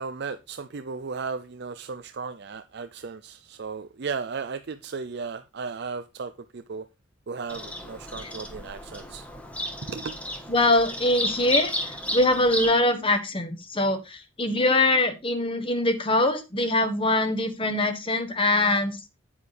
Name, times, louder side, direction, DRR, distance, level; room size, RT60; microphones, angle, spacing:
voice 1, 0.0-6.8 7.3-9.2 9.9-10.1, right 5 dB, 55° right, 0.5 m, -35 dB
Bird vocalization bird call bird song, 7.5-12.8, left 1 dB, 5° left, 1.3 m, -32 dB
voice 2, 10.5-11.7 12.1-19.0, left 2 dB, 25° left, 1.4 m, -23 dB
8.8 x 8.5 x 3.4 m
head